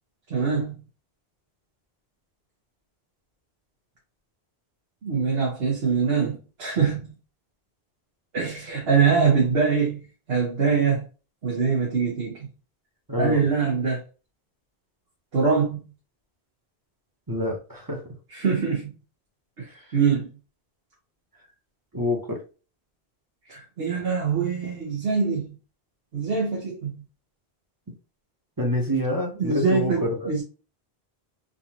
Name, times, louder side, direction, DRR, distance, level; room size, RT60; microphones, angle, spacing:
voice 1, 0.3-0.8 5.0-7.1 8.3-10.0 10.3-11.0 11.4-12.5 13.2-14.0 15.3-15.9 18.3-18.9 19.6-20.3 23.5-25.6 26.1-27.0 29.4-30.4, right 5 dB, 70° right, 1.2 m, -23 dB
voice 2, 13.1-13.4 17.3-18.0 21.9-22.4 28.6-30.3, left 1 dB, 20° right, 0.9 m, -27 dB
3.8 x 2.5 x 2.9 m
omnidirectional pair, 1.1 m